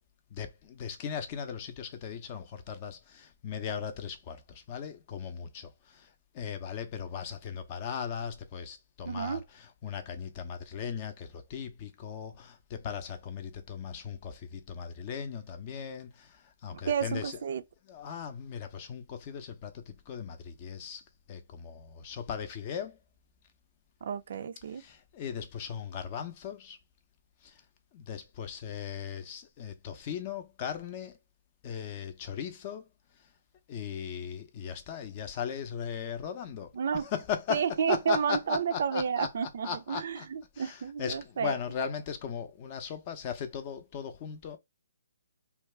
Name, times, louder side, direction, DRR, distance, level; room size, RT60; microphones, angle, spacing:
voice 1, 0.3-5.7 6.3-16.3 16.6-17.4 17.9-21.0 21.3-23.0 24.8-26.8 27.9-31.1 31.6-32.8 33.7-36.7 36.9-39.3 39.6-40.3 40.6-44.6, left 7 dB, 30° left, 0.5 m, -38 dB
voice 2, 9.1-9.4 16.9-17.6 24.0-24.8 36.7-37.0 37.5-41.5, right 7 dB, 55° right, 0.4 m, -31 dB
2.6 x 2.3 x 3.2 m
hypercardioid pair, 155°, 0 cm